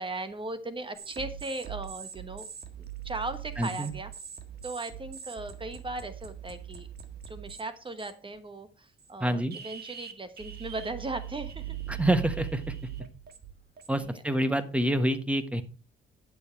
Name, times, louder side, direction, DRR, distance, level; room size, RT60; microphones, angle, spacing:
voice 1, 0.0-2.5 2.8-4.1 4.6-6.9 7.3-11.8 14.0-14.2, right 2 dB, 25° right, 10 dB, 1.1 m, -38 dB
sound 1, 1.0-7.6 8.0-8.4 9.0-9.1 9.5-14.1, right 10 dB, 55° right, 1.7 m, -41 dB
voice 2, 3.6-3.9 9.2-9.5 11.9-12.7 13.9-15.6, right 1 dB, 5° right, 10 dB, 1.4 m, -27 dB
10.5 x 7.2 x 4.4 m, 0.32 s
cardioid pair, 90°, 20 cm